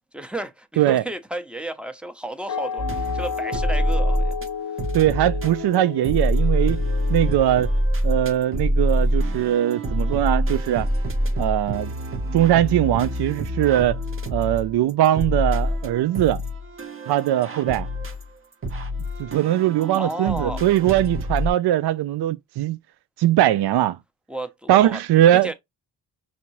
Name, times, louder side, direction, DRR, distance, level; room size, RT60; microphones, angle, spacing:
voice 1, 0.1-4.4 19.8-20.6 24.3-25.0 25.4-25.5, right 1 dB, 5° right, 0.8 m, -33 dB
sound 1, 2.5-7.9, left 6 dB, 50° left, 0.6 m, -32 dB
sound 2, 2.8-4.5 4.8-21.5, equal, 30° right, 1.0 m, -26 dB
voice 2, 4.9-6.8 7.1-7.7 8.0-10.9 11.4-11.9 12.3-14.0 14.3-16.4 17.1-17.9 19.2-22.8 23.2-24.0 24.7-25.5, right 12 dB, 70° right, 0.5 m, -20 dB
5.7 x 2.8 x 3.1 m
cardioid pair, 105°, 41 cm